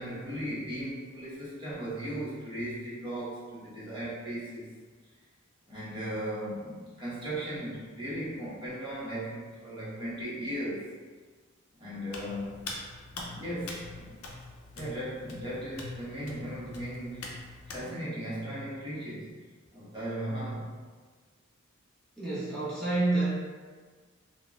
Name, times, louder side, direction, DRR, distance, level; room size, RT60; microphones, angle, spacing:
voice 1, 0.0-4.7 5.7-10.9 11.8-12.7 13.1-14.2 14.8-17.3 17.7-19.3 19.7-20.7, right 1 dB, 20° right, -9 dB, 0.9 m, -37 dB
Hands, 12.1-17.8, left 3 dB, 80° left, 0.5 m, -43 dB
voice 2, 22.2-23.3, right 2 dB, 5° left, -12 dB, 1.0 m, -28 dB
3.7 x 2.1 x 2.3 m, 1.5 s
head